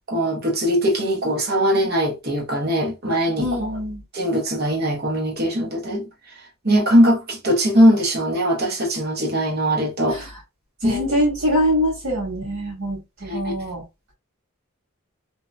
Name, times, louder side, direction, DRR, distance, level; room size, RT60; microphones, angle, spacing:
voice 1, 0.1-3.7 4.1-6.0 6.6-10.2 10.8-11.0 13.3-13.5, equal, 50° right, 1.0 m, -20 dB
voice 2, 3.4-4.0 10.1-10.3 10.8-13.8, equal, 80° right, 1.6 m, -23 dB
2.8 x 2.6 x 2.2 m
head